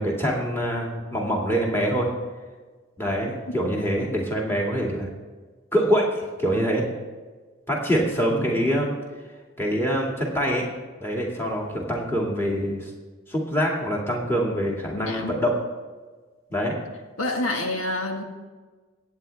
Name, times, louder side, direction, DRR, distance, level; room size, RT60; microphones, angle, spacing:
voice 1, 0.0-2.1 3.0-5.1 5.7-6.8 7.7-8.9 9.6-10.7 11.0-12.9 13.3-15.6 16.5-16.8, equal, 10° left, -2 dB, 2.2 m, -25 dB
voice 2, 3.5-3.8 8.4-8.5 14.9-15.4 17.2-18.2, left 2 dB, 85° left, 2 dB, 1.8 m, -28 dB
22.5 x 9.0 x 3.5 m, 1.4 s
head